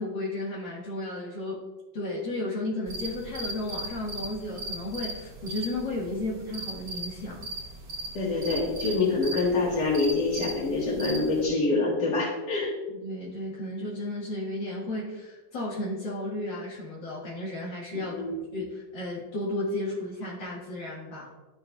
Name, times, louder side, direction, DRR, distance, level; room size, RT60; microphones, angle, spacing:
voice 1, 0.0-1.6 1.9-7.5 12.9-18.2 18.5-21.3, left 1 dB, 90° left, -7 dB, 2.2 m, -33 dB
sound 1, 2.9-11.4, right 1 dB, 65° right, 1.7 m, -38 dB
voice 2, 8.1-12.8 18.1-18.4, left 3 dB, 65° left, -6 dB, 2.1 m, -26 dB
12.5 x 5.3 x 2.3 m, 1.2 s
omnidirectional pair, 2.0 m